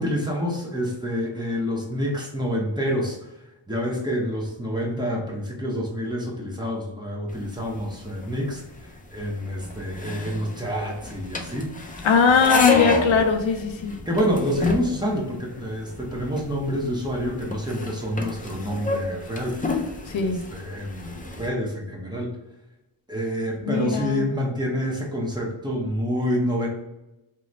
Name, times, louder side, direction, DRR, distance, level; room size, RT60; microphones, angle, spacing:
voice 1, 0.0-3.2 3.7-12.0 14.1-19.6 20.2-22.4 23.1-26.7, equal, 10° right, -3 dB, 0.9 m, -27 dB
sound 1, 7.3-21.5, left 3 dB, 20° left, 0.4 m, -30 dB
voice 2, 12.0-14.0 20.1-20.4 23.6-24.2, left 5 dB, 65° left, 6 dB, 0.5 m, -20 dB
3.0 x 2.1 x 3.8 m, 0.96 s
cardioid pair, 70°, 49 cm